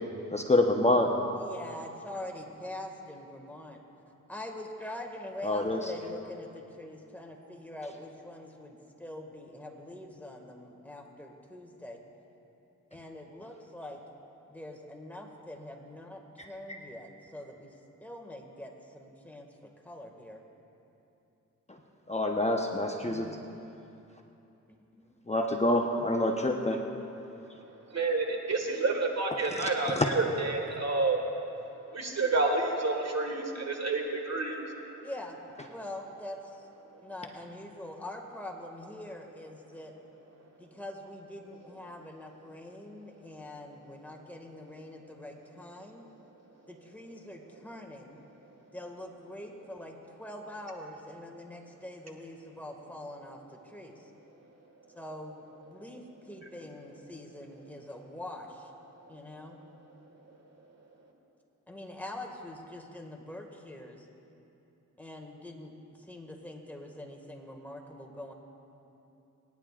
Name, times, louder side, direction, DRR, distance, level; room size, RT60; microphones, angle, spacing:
voice 1, 0.3-1.1 5.4-5.8 16.7-16.8 22.1-23.3 25.3-26.8 29.6-30.1, left 1 dB, 20° left, 1 dB, 1.0 m, -27 dB
voice 2, 1.3-3.8 4.3-12.0 12.9-14.0 14.5-17.7 18.0-19.5 19.8-20.4 23.0-23.5 24.7-25.1 35.0-36.6 37.0-39.9 40.6-46.0 46.7-48.2 48.7-54.1 54.9-58.7 59.1-59.6 61.7-64.0 65.0-68.3, left 1 dB, 5° left, 1 dB, 2.0 m, -44 dB
voice 3, 27.9-31.2 31.9-34.6, right 3 dB, 50° right, 2 dB, 1.9 m, -29 dB
25.0 x 10.5 x 2.5 m, 2.9 s
cardioid pair, 50°, 33 cm